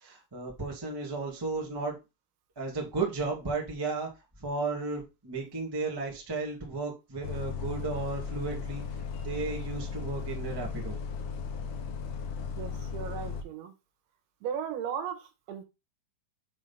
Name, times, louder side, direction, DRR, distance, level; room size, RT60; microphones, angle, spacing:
voice 1, 0.0-2.0 2.5-4.1 4.4-8.8 9.2-11.0, right 3 dB, 25° right, -2 dB, 0.5 m, -34 dB
Bus, 7.2-13.4, left 6 dB, 90° left, 1.8 m, -36 dB
voice 2, 12.6-13.7 14.4-15.7, right 8 dB, 80° right, 6 dB, 3.5 m, -36 dB
7.3 x 3.6 x 5.7 m, 0.26 s
omnidirectional pair, 5.3 m